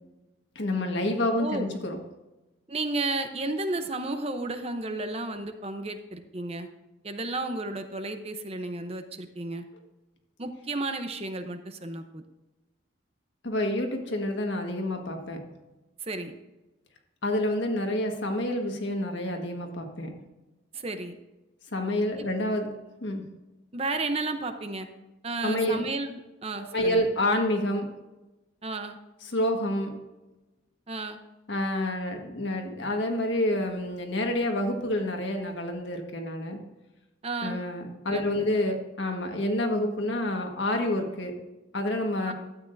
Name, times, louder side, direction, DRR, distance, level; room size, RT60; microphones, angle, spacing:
voice 1, 0.5-2.0 13.4-15.4 17.2-20.1 21.7-23.4 25.4-25.8 26.6-27.9 29.3-30.0 31.5-36.6 37.4-41.4 41.7-42.3, left 1 dB, 70° left, 3 dB, 1.5 m, -28 dB
voice 2, 1.2-1.7 2.7-6.7 7.0-9.6 10.4-12.2 16.0-16.4 20.7-21.2 22.2-22.3 23.7-24.9 25.2-27.1 28.6-29.0 30.9-31.2 37.2-37.6 38.1-38.5 42.3-42.4, right 2 dB, 30° right, 7 dB, 0.7 m, -33 dB
12.5 x 8.7 x 2.6 m, 1.1 s
head